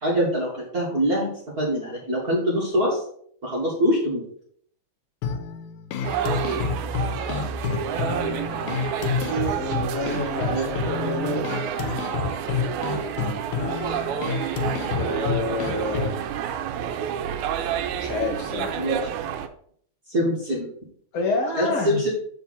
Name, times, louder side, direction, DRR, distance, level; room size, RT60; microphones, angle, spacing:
voice 1, 0.0-1.3 1.6-3.0 3.4-4.2 10.4-10.7 18.8-19.0 20.1-20.7 21.6-22.1, equal, 35° right, -5 dB, 1.8 m, -24 dB
sound 1, 5.2-16.2, left 6 dB, 90° left, 2.2 m, -29 dB
sound 2, 6.0-19.5, right 8 dB, 85° right, 2.0 m, -29 dB
voice 2, 9.2-11.5 14.9-16.2 18.0-18.8 21.1-22.1, left 2 dB, 60° left, 0 dB, 2.3 m, -28 dB
7.0 x 5.0 x 4.1 m, 0.62 s
omnidirectional pair, 3.4 m